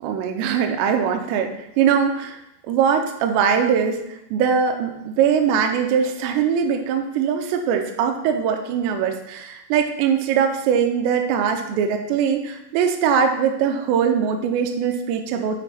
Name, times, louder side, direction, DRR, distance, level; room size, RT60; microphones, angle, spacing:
voice 1, 0.0-2.4 2.7-4.0 4.3-15.6, right 7 dB, 80° right, 4 dB, 2.6 m, -21 dB
8.0 x 5.2 x 4.2 m, 0.84 s
omnidirectional pair, 5.8 m